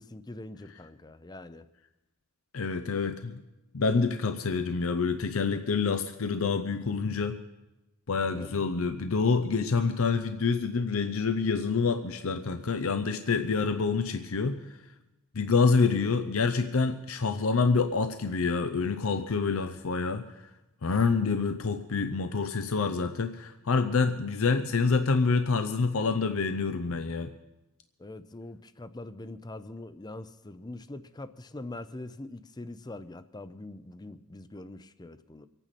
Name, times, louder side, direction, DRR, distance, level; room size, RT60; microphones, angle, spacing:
voice 1, 0.0-1.7 8.3-8.5 28.0-35.5, left 2 dB, 20° left, 12 dB, 0.6 m, -43 dB
voice 2, 2.5-3.4 3.7-7.4 8.1-14.6 15.3-20.2 20.8-27.3, left 4 dB, 70° left, 8 dB, 0.7 m, -27 dB
25.0 x 9.1 x 4.2 m, 1.0 s
head